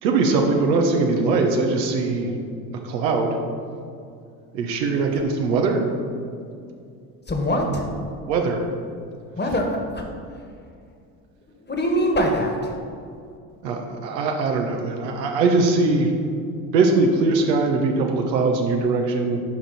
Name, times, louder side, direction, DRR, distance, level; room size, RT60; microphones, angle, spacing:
voice 1, 0.0-2.3 2.7-3.4 4.5-5.8 8.3-8.7 13.6-16.1 16.7-19.4, right 3 dB, 80° right, 3 dB, 1.1 m, -21 dB
voice 2, 7.3-7.8 9.4-10.0 11.7-12.7, equal, 20° left, 2 dB, 1.5 m, -23 dB
9.8 x 5.3 x 4.1 m, 2.4 s
hypercardioid pair, 60°, 50 cm